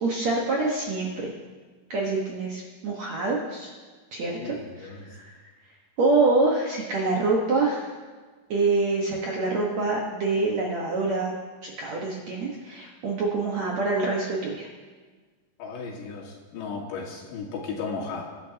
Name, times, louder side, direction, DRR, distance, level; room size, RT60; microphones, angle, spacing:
voice 1, 0.0-1.3 1.9-3.7 4.1-4.4 4.8-5.3 6.0-7.9 8.5-11.3 11.6-14.7, right 3 dB, 60° right, -3 dB, 1.9 m, -26 dB
voice 2, 4.2-5.1 15.6-18.2, left 4 dB, 85° left, -1 dB, 4.1 m, -35 dB
24.0 x 11.0 x 2.9 m, 1.4 s
omnidirectional pair, 4.9 m